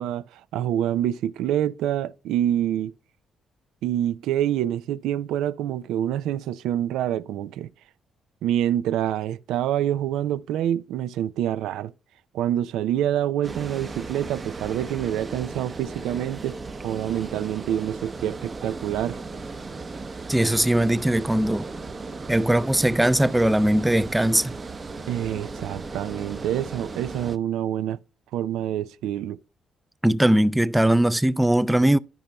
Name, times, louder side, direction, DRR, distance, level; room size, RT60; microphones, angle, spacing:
voice 1, 0.0-2.9 3.8-7.7 8.4-11.9 12.3-16.6 16.8-19.2 25.1-28.0 28.3-29.4, right 11 dB, 90° right, 0.4 m, -26 dB
Water, 13.4-27.4, right 3 dB, 35° right, 0.8 m, -36 dB
voice 2, 20.3-21.7 22.3-24.5 30.0-32.0, right 1 dB, 10° right, 0.4 m, -20 dB
13.0 x 5.4 x 2.3 m
cardioid pair, 90°, 0 cm